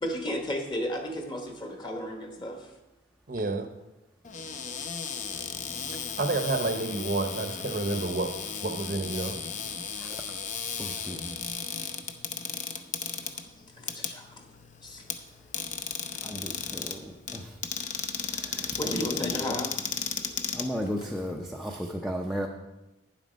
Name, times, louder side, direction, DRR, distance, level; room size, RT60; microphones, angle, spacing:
voice 1, 0.0-2.7 10.8-10.9 12.8-12.9 13.2-13.3 13.7-14.4 14.8-15.0 15.6-15.7 18.8-19.7, equal, 25° left, 3 dB, 1.1 m, -34 dB
voice 2, 3.3-3.7 6.2-8.3 8.6-9.4, right 2 dB, 45° right, 6 dB, 0.8 m, -29 dB
Cupboard open or close, 4.2-21.3, left 6 dB, 40° left, 0.6 m, -35 dB
voice 3, 10.8-11.3 16.2-17.6 18.3-19.6 20.5-22.5, equal, ahead, 1 dB, 0.5 m, -35 dB
9.6 x 7.7 x 5.1 m, 0.99 s
head